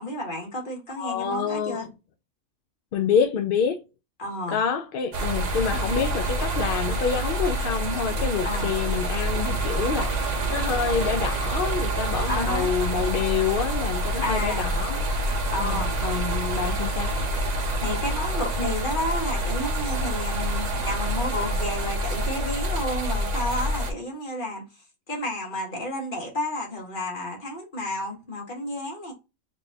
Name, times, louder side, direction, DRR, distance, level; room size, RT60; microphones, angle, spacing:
voice 1, 0.0-1.9 4.2-4.6 8.4-8.7 12.3-12.7 14.2-14.7 15.5-15.9 17.8-24.6 25.1-29.1, left 1 dB, 35° left, 1.7 m, -31 dB
voice 2, 1.0-1.9 2.9-3.8 4.5-10.2 10.5-15.0 15.6-17.1, left 6 dB, 65° left, 0.5 m, -27 dB
sound 1, 5.1-23.9, right 1 dB, 40° right, 0.7 m, -27 dB
4.1 x 3.3 x 2.7 m
omnidirectional pair, 1.5 m